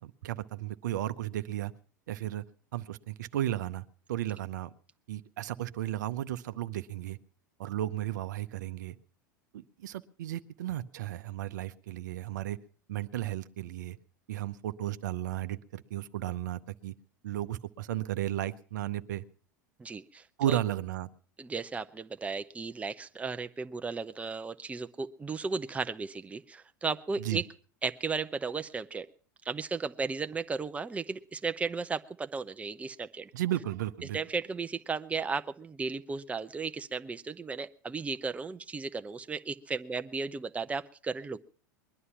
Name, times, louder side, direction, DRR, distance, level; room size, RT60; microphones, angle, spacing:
voice 1, 0.0-1.7 2.1-2.4 2.7-4.7 5.1-7.2 7.6-9.0 9.5-12.6 12.9-14.0 14.3-16.9 17.2-19.2 20.4-21.1 27.2-27.4 33.3-34.2, right 13 dB, 70° right, 12 dB, 0.7 m, -34 dB
voice 2, 19.8-20.6 21.4-27.4 27.8-29.1 29.4-33.3 34.1-41.4, right 4 dB, 15° right, 10 dB, 0.7 m, -35 dB
21.0 x 11.0 x 5.7 m, 0.42 s
hypercardioid pair, 90°, 10 cm